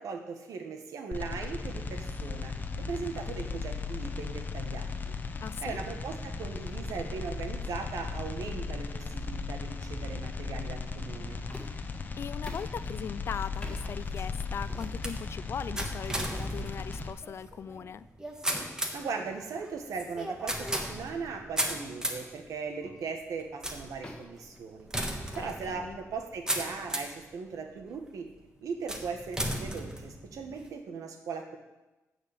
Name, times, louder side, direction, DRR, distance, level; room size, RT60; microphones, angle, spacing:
voice 1, 0.0-5.1 5.6-11.4 18.7-28.3 28.6-31.6, right 5 dB, 80° right, 4 dB, 1.6 m, -39 dB
sound 1, 1.1-17.1, left 4 dB, 30° left, 0.9 m, -36 dB
voice 2, 5.4-5.8 12.2-18.1 25.3-26.0, left 7 dB, 50° left, 16 dB, 0.4 m, -39 dB
sound 2, 11.5-11.9 12.5-12.8 13.6-13.9 14.7-14.9 15.7-15.9 16.9-17.2 18.5-18.9 20.2-20.3 20.8-20.9 21.7-21.9 22.8-23.1 24.0-25.2, left 1 dB, 15° left, 1.7 m, -48 dB
sound 3, 13.6-27.2 27.8-28.3 28.9-30.7, right 1 dB, 10° right, 1.5 m, -36 dB
13.0 x 5.0 x 8.4 m, 1.1 s
cardioid pair, 125°, 6 cm